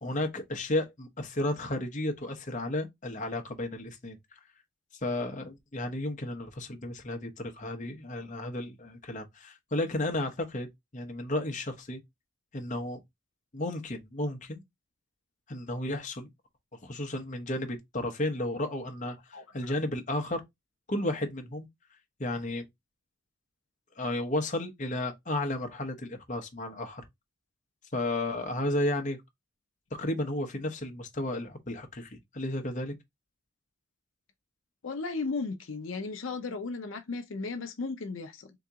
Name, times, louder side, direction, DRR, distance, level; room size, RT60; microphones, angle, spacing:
voice 1, 0.0-4.2 5.0-10.7 10.9-12.0 12.5-13.0 13.5-14.6 15.5-16.3 16.8-19.2 19.5-20.4 20.9-21.7 22.2-22.7 24.0-27.0 27.9-29.2 30.0-32.9, left 1 dB, 35° left, 0.8 m, -33 dB
voice 2, 34.8-38.5, left 4 dB, 70° left, 0.6 m, -35 dB
3.8 x 2.8 x 3.5 m
head